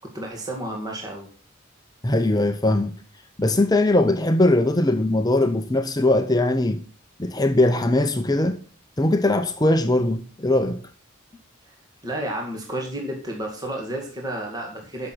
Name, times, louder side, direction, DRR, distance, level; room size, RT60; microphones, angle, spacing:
voice 1, 0.1-1.3 12.0-15.1, right 1 dB, 20° right, 2.0 m, -31 dB
voice 2, 2.0-3.0 3.4-6.8 7.2-8.6 9.0-10.8, left 2 dB, 20° left, 0.6 m, -20 dB
12.5 x 6.2 x 6.2 m
head